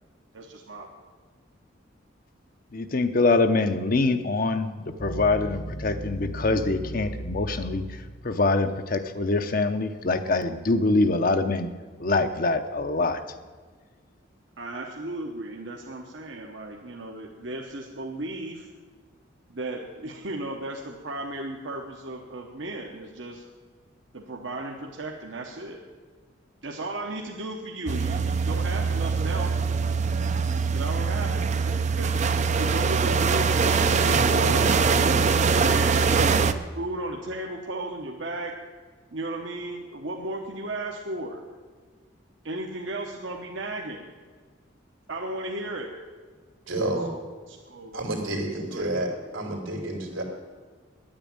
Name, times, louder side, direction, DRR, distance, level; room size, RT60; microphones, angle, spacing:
voice 1, 0.3-0.9 14.6-18.7 19.5-23.4 24.1-25.8 26.6-29.6 30.7-32.2 32.6-36.4 36.7-38.6 39.1-41.4 42.4-44.0 45.1-45.9 47.5-48.0 48.7-48.9, right 2 dB, 70° right, 0 dB, 1.1 m, -35 dB
voice 2, 2.7-7.8 8.2-11.7 12.0-13.2, left 3 dB, 45° left, 8 dB, 0.7 m, -24 dB
sound 1, 5.0-8.4, right 1 dB, 80° left, 1.7 m, -36 dB
sound 2, 27.9-36.5, right 5 dB, 35° right, 0.5 m, -23 dB
voice 3, 46.6-47.2 47.9-50.2, right 1 dB, 90° right, 1 dB, 2.9 m, -30 dB
10.5 x 8.8 x 8.8 m, 1.5 s
head